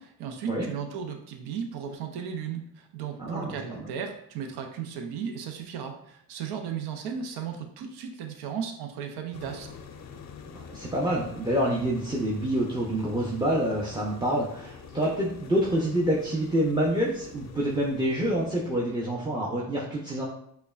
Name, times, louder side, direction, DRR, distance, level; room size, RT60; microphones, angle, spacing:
voice 1, 0.0-9.7, right 7 dB, 80° right, 5 dB, 0.6 m, -35 dB
voice 2, 3.2-3.9 10.5-20.2, right 1 dB, 10° right, -4 dB, 0.6 m, -27 dB
sound 1, 9.3-19.1, left 6 dB, 45° left, 0.5 m, -46 dB
5.1 x 2.2 x 2.3 m, 0.69 s
cardioid pair, 80°, 38 cm